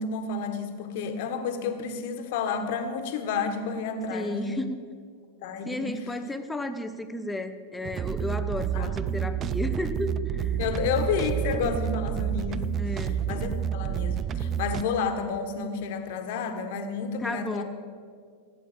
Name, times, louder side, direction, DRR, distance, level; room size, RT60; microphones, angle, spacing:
voice 1, 0.0-4.6 5.4-6.0 8.7-8.9 10.6-12.9 13.3-17.6, left 5 dB, 50° left, 6 dB, 1.5 m, -30 dB
voice 2, 4.1-4.8 5.7-10.6 12.8-13.2 17.2-17.6, left 1 dB, 5° left, 8 dB, 0.8 m, -33 dB
sound 1, 7.8-14.8, right 9 dB, 30° right, 0.5 m, -29 dB
15.5 x 8.5 x 7.4 m, 2.1 s
figure-of-eight pair, 90°, 0 cm